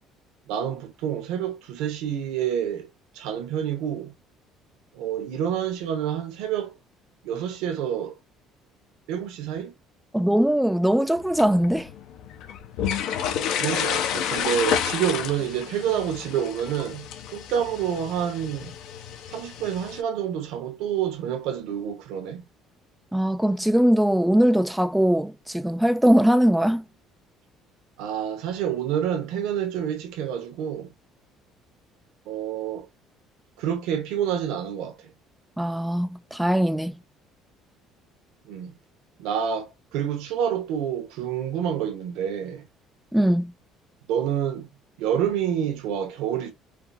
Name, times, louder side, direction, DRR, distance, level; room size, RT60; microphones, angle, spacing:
voice 1, 0.5-2.9 3.1-4.1 4.9-6.7 7.2-8.1 9.1-9.7 13.4-18.7 19.3-22.4 28.0-30.9 32.3-32.9 33.6-35.0 38.5-38.7 39.2-42.7 44.1-44.7 45.0-46.5, right 9 dB, 85° right, 1.2 m, -28 dB
voice 2, 10.1-11.9 23.1-26.8 35.6-37.0 43.1-43.5, equal, ahead, 0.3 m, -21 dB
sound 1, 11.2-20.0, left 9 dB, 60° left, 0.7 m, -30 dB
4.9 x 2.4 x 4.0 m
cardioid pair, 180°, 0 cm